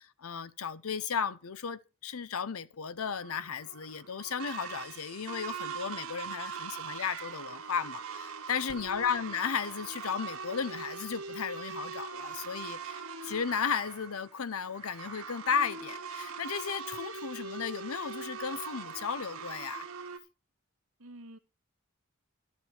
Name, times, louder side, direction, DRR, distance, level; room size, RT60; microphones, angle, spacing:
voice 1, 0.0-19.9, left 6 dB, 85° left, 0.7 m, -35 dB
sound 1, 3.0-20.2, right 5 dB, 90° right, 1.8 m, -42 dB
voice 2, 21.0-21.4, right 1 dB, 75° right, 1.5 m, -50 dB
12.0 x 7.4 x 5.7 m
head